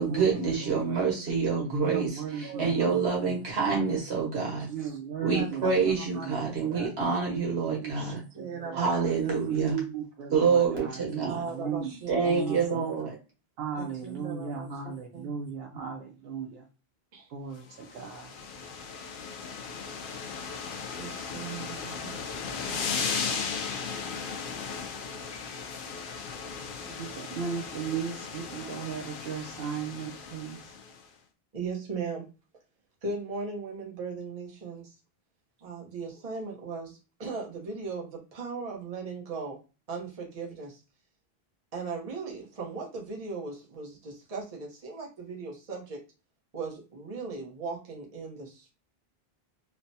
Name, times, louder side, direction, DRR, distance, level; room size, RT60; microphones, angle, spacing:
voice 1, 0.0-4.7 5.2-8.2 8.7-9.8 10.3-11.5 12.1-13.1, right 5 dB, 85° right, -1 dB, 1.5 m, -27 dB
voice 2, 0.6-1.0 1.8-3.4 3.7-3.8 4.7-6.9 7.3-8.9 9.5-11.9 12.2-12.6 13.6-16.7 17.3-18.3 26.8-30.7, right 7 dB, 70° right, 1 dB, 0.7 m, -36 dB
voice 3, 2.4-2.9 3.7-3.8 4.8-5.0 5.3-6.9 8.1-9.1 11.2-12.6 13.8-15.3 17.1-17.3 21.0-22.8 25.8-26.0 31.5-32.3 33.0-34.9 35.6-39.6 39.9-40.8 41.7-46.0 46.5-48.7, right 4 dB, 40° right, -2 dB, 0.9 m, -38 dB
sound 1, 17.8-31.0, left 5 dB, 60° left, 0.7 m, -36 dB
3.2 x 2.1 x 2.6 m, 0.32 s
omnidirectional pair, 1.1 m